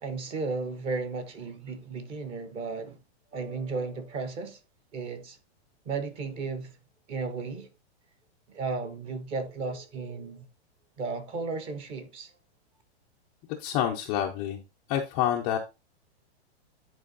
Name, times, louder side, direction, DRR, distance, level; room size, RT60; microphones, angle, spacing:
voice 1, 0.0-3.0 3.3-4.6 4.9-5.4 5.9-6.8 7.1-7.7 8.5-10.5 11.0-12.3, right 4 dB, 15° right, 0.7 m, -34 dB
voice 2, 13.6-14.6 14.9-15.6, left 10 dB, 15° left, 0.4 m, -27 dB
10.0 x 4.5 x 3.9 m
supercardioid pair, 165°, 33 cm